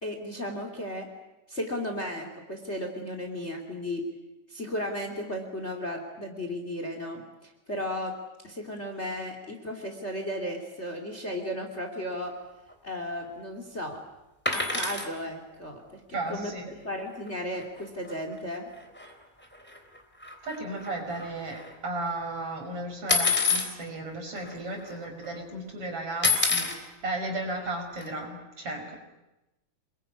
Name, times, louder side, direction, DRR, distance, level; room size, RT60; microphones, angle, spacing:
voice 1, 0.0-1.1 1.5-4.0 4.5-8.1 8.4-12.3 12.8-14.0 14.5-16.0 16.3-18.7, left 1 dB, 20° left, 4 dB, 3.0 m, -35 dB
sound 1, 14.4-15.1 17.3-17.4 17.6-17.8 18.0-18.2 19.0-19.1 19.5-21.7 23.1-23.7 24.5-24.6 24.8-25.3 26.2-26.8 28.0-28.1, left 4 dB, 5° left, 3.2 m, -27 dB
voice 2, 16.1-16.7 20.4-29.0, right 2 dB, 50° right, 3 dB, 6.5 m, -35 dB
28.0 x 22.0 x 9.7 m, 0.97 s
omnidirectional pair, 3.3 m